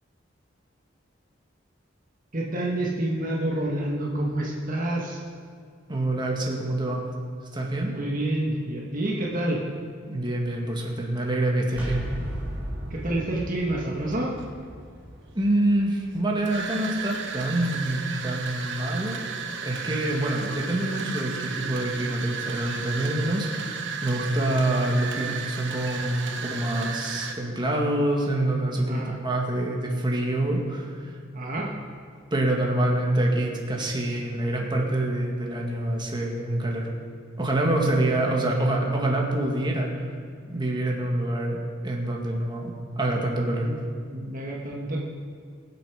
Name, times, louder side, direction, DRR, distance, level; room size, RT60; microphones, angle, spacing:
voice 1, 2.3-5.2 7.8-9.6 12.9-14.3 28.9-29.1 31.3-31.7 43.6-43.8 44.1-45.0, right 1 dB, 45° right, -2 dB, 1.6 m, -28 dB
voice 2, 5.9-7.0 7.5-7.9 10.0-12.1 15.3-19.2 19.6-31.2 32.3-36.9 37.4-40.1 40.5-43.7, right 1 dB, 25° right, -1 dB, 2.0 m, -26 dB
sound 1, 11.7-17.4, equal, 10° right, 3.2 m, -37 dB
sound 2, 13.1-13.4 14.1-14.6 15.4-27.3, right 5 dB, 65° right, 1.2 m, -34 dB
24.0 x 8.0 x 5.0 m, 2.1 s
head